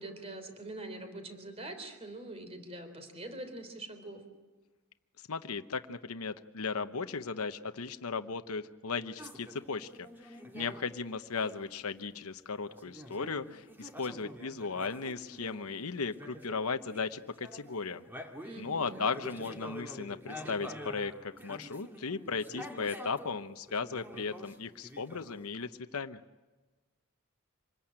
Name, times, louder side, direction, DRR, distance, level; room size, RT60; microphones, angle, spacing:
voice 1, 0.0-4.2 18.4-19.1, right 2 dB, 30° right, 7 dB, 3.5 m, -44 dB
voice 2, 5.3-9.9 10.2-18.0 18.6-21.1 21.4-26.2, left 4 dB, 75° left, 9 dB, 0.9 m, -36 dB
sound 1, 9.2-10.9 11.3-11.7 12.7-15.7 16.1-17.1 17.4-23.4 23.6-25.7, equal, 10° right, 2.0 m, -47 dB
26.5 x 20.5 x 8.9 m, 1.2 s
head